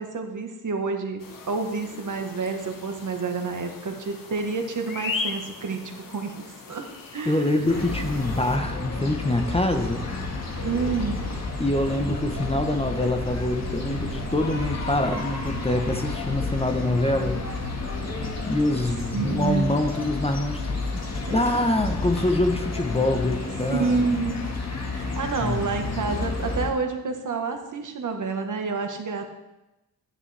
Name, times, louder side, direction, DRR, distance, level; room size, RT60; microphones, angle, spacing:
voice 1, 0.0-6.4 6.7-6.8 7.1-7.7 10.6-11.3 18.9-19.8 21.1-21.6 23.7-24.5 24.9-29.2, right 4 dB, 55° right, 4 dB, 1.4 m, -29 dB
sound 1, 1.2-8.6, left 4 dB, 60° left, 1.3 m, -38 dB
voice 2, 7.3-10.0 11.6-17.4 18.4-24.3 25.4-26.0, left 1 dB, 15° left, 5 dB, 0.9 m, -25 dB
sound 2, 7.7-26.7, left 3 dB, 45° left, 1.8 m, -31 dB
sound 3, 12.5-16.5 16.8-19.0, right 1 dB, 30° right, 2.2 m, -42 dB
9.9 x 9.8 x 3.4 m, 0.97 s
cardioid pair, 80°, 37 cm